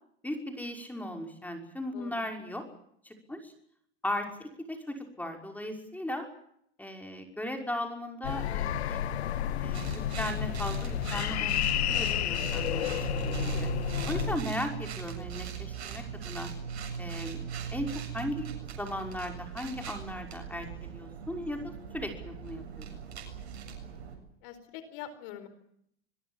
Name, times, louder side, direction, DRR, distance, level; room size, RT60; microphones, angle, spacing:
voice 1, 0.2-2.6 3.0-3.5 4.0-6.3 6.8-9.0 9.6-11.7 12.0-13.7 14.1-16.5 17.0-17.4 17.7-22.9, left 1 dB, 5° left, 3 dB, 5.8 m, -37 dB
voice 2, 1.9-2.3 12.1-12.4 24.4-25.5, left 10 dB, 60° left, 12 dB, 4.5 m, -44 dB
sound 1, 8.2-14.4, left 10 dB, 80° left, 1.8 m, -31 dB
sound 2, 9.7-24.2, right 7 dB, 85° right, 7.5 m, -39 dB
26.5 x 22.0 x 7.4 m, 0.70 s
hypercardioid pair, 100°, 32 cm